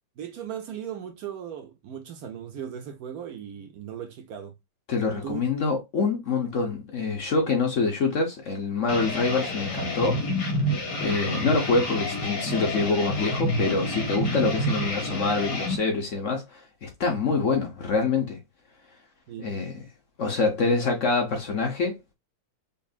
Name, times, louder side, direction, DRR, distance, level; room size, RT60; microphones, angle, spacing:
voice 1, 0.2-4.5 5.2-5.4 19.3-19.5, right 8 dB, 65° right, 1.1 m, -37 dB
voice 2, 4.9-10.2 10.5-10.7 11.0-18.4 19.4-19.8 20.2-22.1, left 4 dB, 55° left, 1.1 m, -26 dB
sound 1, 8.9-15.8, left 1 dB, 75° left, 2.0 m, -29 dB
5.3 x 2.6 x 2.4 m
omnidirectional pair, 1.9 m